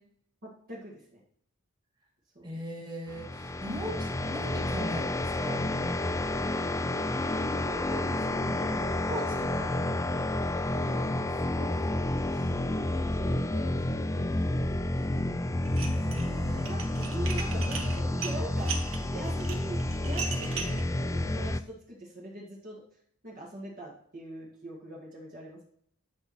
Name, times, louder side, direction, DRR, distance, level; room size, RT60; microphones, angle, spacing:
voice 1, 0.4-1.2 2.3-2.5 7.0-9.0 10.8-15.5 16.6-18.7 19.1-22.8 23.2-25.6, right 1 dB, 40° right, -3 dB, 2.1 m, -43 dB
voice 2, 2.4-5.7 9.1-9.7 15.8-16.8, equal, 20° right, -1 dB, 2.6 m, -39 dB
sound 1, 3.1-21.6, left 1 dB, 15° left, 0.4 m, -30 dB
Dishes pots and pans, 15.6-16.3 16.6-20.8, right 6 dB, 65° right, 1.4 m, -37 dB
10.5 x 6.2 x 4.4 m, 0.66 s
head